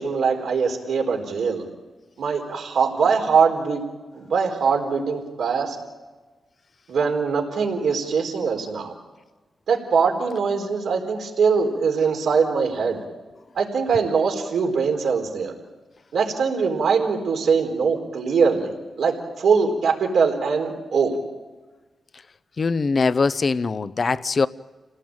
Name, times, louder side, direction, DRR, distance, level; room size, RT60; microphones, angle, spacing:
voice 1, 0.0-1.7 2.2-3.8 4.1-5.8 6.9-8.9 9.7-13.0 13.6-15.5 16.1-21.2, right 5 dB, 80° right, 4.2 m, -22 dB
voice 2, 22.6-24.5, left 4 dB, 40° left, 0.7 m, -22 dB
29.0 x 18.0 x 8.9 m
wide cardioid pair, 115°, 0 cm